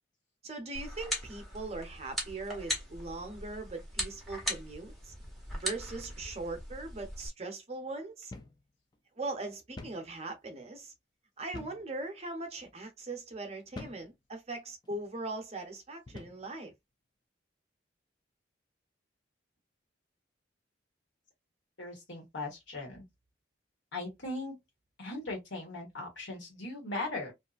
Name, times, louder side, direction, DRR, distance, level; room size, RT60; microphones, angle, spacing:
voice 1, 0.4-5.1 5.5-8.3 9.2-10.9 11.4-16.7, right 2 dB, 35° right, 0.7 m, -40 dB
sound 1, 0.7-7.3, equal, ahead, 0.8 m, -39 dB
sound 2, 8.3-8.6 8.9-9.0 9.8-10.1 11.5-11.9 12.6-12.8 13.7-14.1 14.8-15.0 16.1-16.5, left 2 dB, 20° left, 0.3 m, -46 dB
voice 2, 21.8-23.0 23.9-24.5 25.0-27.3, left 2 dB, 85° left, 1.4 m, -38 dB
2.7 x 2.4 x 2.4 m
head